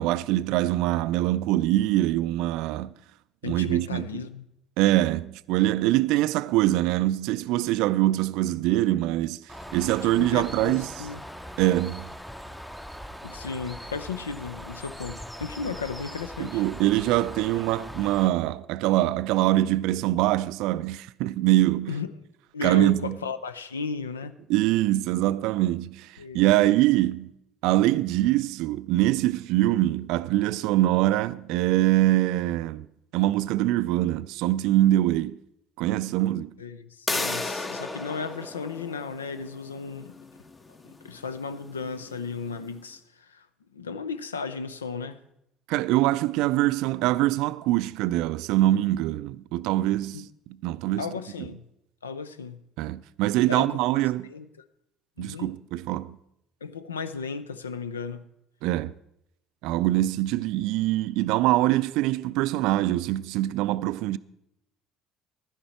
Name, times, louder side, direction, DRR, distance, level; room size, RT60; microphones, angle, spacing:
voice 1, 0.0-2.9 3.4-4.2 4.8-9.4 9.7-10.9 11.6-12.1 16.4-21.9 22.6-23.2 24.5-27.3 27.6-32.9 33.1-35.4 35.8-36.5 45.7-50.3 50.6-51.1 52.8-54.3 55.2-56.2 58.6-58.9 59.6-64.2, right 15 dB, 65° right, 0.3 m, -24 dB
voice 2, 3.4-4.5 10.0-11.2 13.2-16.6 21.9-22.1 22.5-24.4 26.2-26.7 36.6-40.2 40.8-43.5 43.7-45.2 50.1-50.3 51.0-51.7 52.0-52.6 53.5-54.0 54.3-54.5 55.2-55.6 56.6-58.3, left 5 dB, 85° left, 0.5 m, -35 dB
Bird, 9.5-18.3, equal, 5° left, 0.7 m, -41 dB
sound 1, 37.1-42.7, left 3 dB, 25° left, 1.1 m, -35 dB
11.5 x 10.0 x 4.4 m
hypercardioid pair, 60°, 0 cm